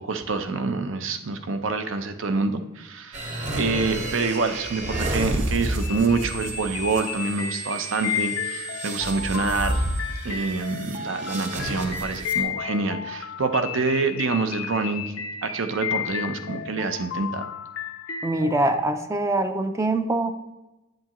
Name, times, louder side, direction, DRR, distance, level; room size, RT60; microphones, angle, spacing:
voice 1, 0.0-3.3 3.5-9.8 10.2-15.2 15.4-17.5, right 3 dB, 65° right, 8 dB, 0.7 m, -26 dB
sound 1, 3.1-12.4, right 1 dB, 35° right, 1.2 m, -31 dB
sound 2, 5.8-18.8, left 8 dB, 75° left, 0.6 m, -33 dB
voice 2, 18.2-20.3, right 2 dB, 15° right, 7 dB, 0.4 m, -23 dB
8.6 x 7.8 x 3.0 m, 1.0 s
head